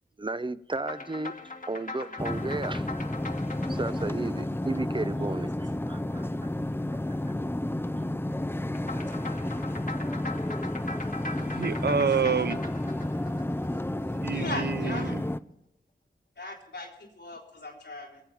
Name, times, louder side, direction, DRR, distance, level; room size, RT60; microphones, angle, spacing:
voice 1, 0.2-1.3 1.7-2.9 3.7-6.5, right 2 dB, 25° right, 0.6 m, -34 dB
sound 1, 0.8-5.4 8.8-14.2, left 3 dB, 50° left, 1.4 m, -41 dB
sound 2, 2.2-15.4, left 1 dB, 10° left, 0.6 m, -31 dB
voice 2, 11.4-12.6 14.2-15.2, right 6 dB, 65° right, 0.6 m, -28 dB
voice 3, 14.3-15.2 16.4-16.9 17.2-18.2, left 2 dB, 90° left, 3.4 m, -38 dB
22.0 x 7.5 x 7.2 m
wide cardioid pair, 45°, 18 cm